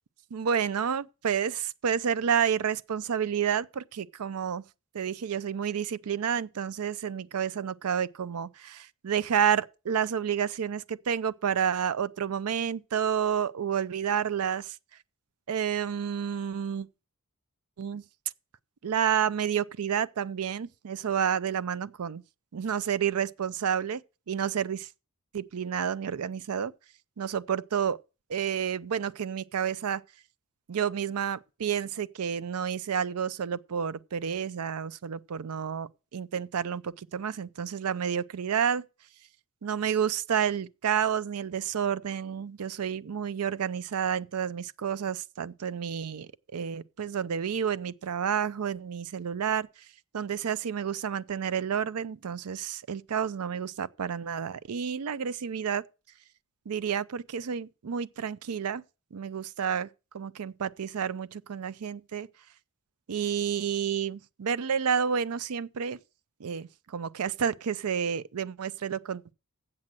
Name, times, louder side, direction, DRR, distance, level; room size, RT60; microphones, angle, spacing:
voice 1, 0.3-4.6 4.9-14.8 15.5-16.9 17.8-18.0 18.8-22.2 22.5-24.0 24.3-24.9 25.3-26.7 27.2-28.0 28.3-30.0 30.7-38.8 39.6-49.7 50.1-55.8 56.7-58.8 59.1-59.9 60.1-62.3 63.1-66.0 66.4-69.3, right 8 dB, 80° right, 0.5 m, -30 dB
7.6 x 7.5 x 7.5 m
head